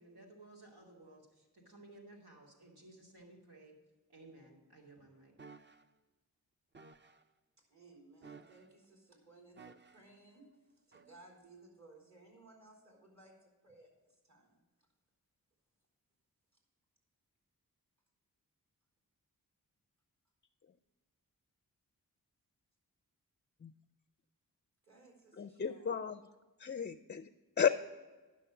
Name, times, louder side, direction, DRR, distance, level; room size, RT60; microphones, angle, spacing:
voice 1, 0.0-3.7 4.1-5.3, right 2 dB, 90° right, -2 dB, 2.6 m, -57 dB
sound 1, 5.4-5.8 6.7-7.2 8.2-8.8 9.6-10.1 10.9-11.1, right 4 dB, 30° right, 0.6 m, -55 dB
voice 2, 7.7-14.6 24.8-25.9, right 2 dB, 45° right, -1 dB, 3.7 m, -60 dB
voice 3, 25.4-26.2 26.6-27.3 27.6-27.7, left 7 dB, 30° left, 10 dB, 0.4 m, -33 dB
10.5 x 6.3 x 6.9 m, 1.3 s
wide cardioid pair, 70°, 37 cm